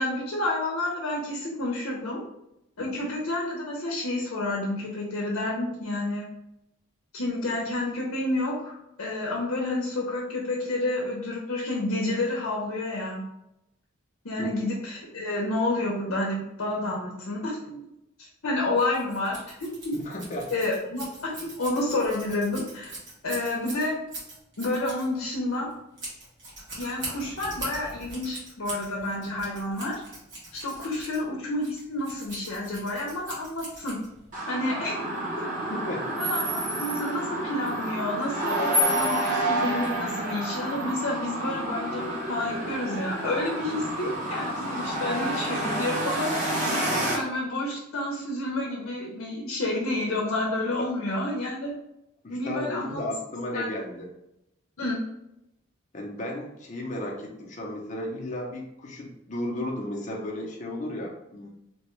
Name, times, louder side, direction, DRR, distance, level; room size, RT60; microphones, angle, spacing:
voice 1, 0.0-2.2 2.8-6.3 7.1-13.2 14.2-17.8 18.2-19.7 20.5-22.9 23.2-24.0 24.6-25.7 26.8-30.0 30.5-34.0 34.5-35.1 36.2-46.5 47.1-51.7 52.3-53.0 53.5-53.7 54.8-55.0, left 2 dB, 80° left, -3 dB, 0.7 m, -29 dB
Scissors, 18.7-34.4, right 2 dB, 65° right, 1.4 m, -42 dB
voice 2, 19.9-20.5 35.7-36.1 43.7-43.8 52.2-54.1 55.9-61.5, left 1 dB, 35° left, -1 dB, 0.6 m, -34 dB
sound 1, 34.3-47.2, right 1 dB, 40° right, 0.8 m, -29 dB
3.0 x 2.2 x 3.0 m, 0.86 s
head